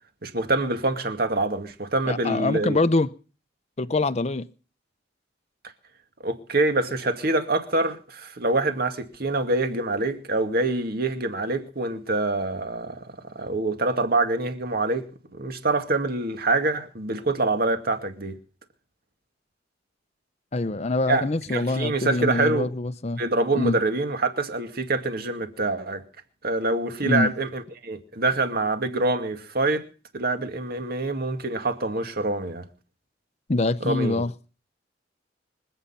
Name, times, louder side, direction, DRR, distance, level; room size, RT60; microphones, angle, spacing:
voice 1, 0.2-2.8 6.2-15.1 15.3-18.4 21.1-21.2 21.5-22.7 23.2-26.0 26.4-29.8 30.1-32.6 33.8-34.2, right 2 dB, 55° right, 2.2 m, -25 dB
voice 2, 2.1-3.1 3.8-4.5 20.5-23.2 23.5-23.8 27.0-27.3 33.5-34.3, left 2 dB, 35° left, 0.7 m, -24 dB
25.5 x 8.7 x 5.7 m
head